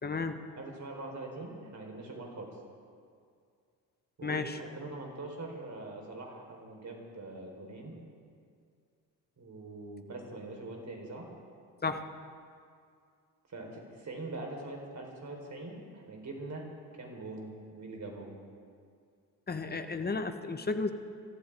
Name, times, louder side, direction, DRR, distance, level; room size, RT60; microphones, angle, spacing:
voice 1, 0.0-0.4 4.2-4.6 11.8-12.0 19.5-20.9, left 4 dB, 20° left, 8 dB, 1.3 m, -33 dB
voice 2, 0.5-2.6 4.2-7.9 9.4-11.3 13.5-16.7 16.9-18.4, right 2 dB, 35° right, 1 dB, 4.2 m, -43 dB
25.0 x 14.5 x 3.6 m, 2.3 s
figure-of-eight pair, 50°, 50 cm